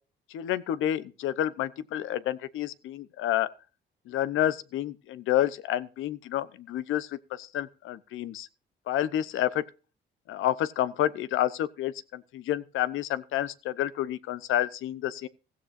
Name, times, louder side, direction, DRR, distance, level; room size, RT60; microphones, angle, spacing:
voice 1, 0.3-3.5 4.1-8.5 8.9-9.6 10.3-15.3, left 12 dB, 85° left, 0.8 m, -29 dB
16.0 x 15.0 x 2.6 m
cardioid pair, 90°, 20 cm